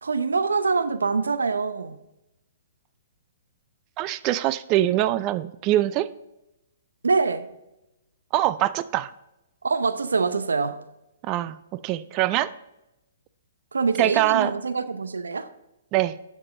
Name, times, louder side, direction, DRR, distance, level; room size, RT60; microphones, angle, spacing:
voice 1, 0.0-2.0 7.0-7.5 9.6-10.8 13.7-15.5, right 4 dB, 80° right, 11 dB, 0.7 m, -24 dB
voice 2, 4.0-6.1 8.3-9.1 11.2-11.6 11.8-12.5 14.0-14.5 15.9-16.2, right 14 dB, 35° right, 15 dB, 0.5 m, -23 dB
9.8 x 7.1 x 3.8 m, 0.92 s
hypercardioid pair, 125°, 0 cm